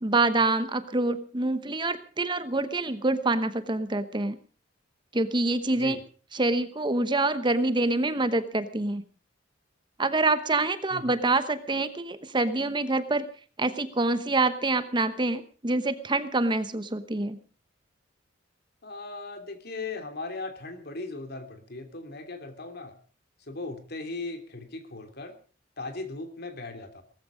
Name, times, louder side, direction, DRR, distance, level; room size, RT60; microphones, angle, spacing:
voice 1, 0.0-4.4 5.1-6.0 6.3-9.0 10.0-13.2 13.6-17.4, right 2 dB, 25° right, 12 dB, 1.0 m, -26 dB
voice 2, 18.8-22.9 23.4-25.3 25.8-27.0, left 3 dB, 55° left, 7 dB, 3.1 m, -38 dB
18.5 x 14.5 x 5.1 m, 0.39 s
head